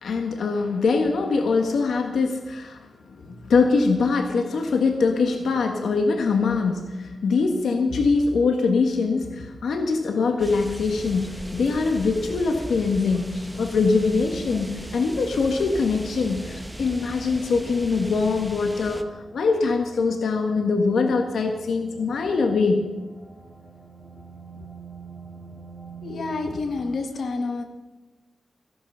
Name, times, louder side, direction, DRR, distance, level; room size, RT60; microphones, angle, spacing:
voice 1, 0.0-2.8 3.1-19.0 19.3-22.9, left 4 dB, 90° left, 4 dB, 1.4 m, -23 dB
sound 1, 10.4-19.0, right 1 dB, 5° right, 0.9 m, -38 dB
sound 2, 15.0-26.7, right 4 dB, 20° right, 4.3 m, -47 dB
voice 2, 26.0-27.6, left 3 dB, 70° left, 5 dB, 1.6 m, -28 dB
15.5 x 12.0 x 5.6 m, 1.1 s
wide cardioid pair, 145°, 0 cm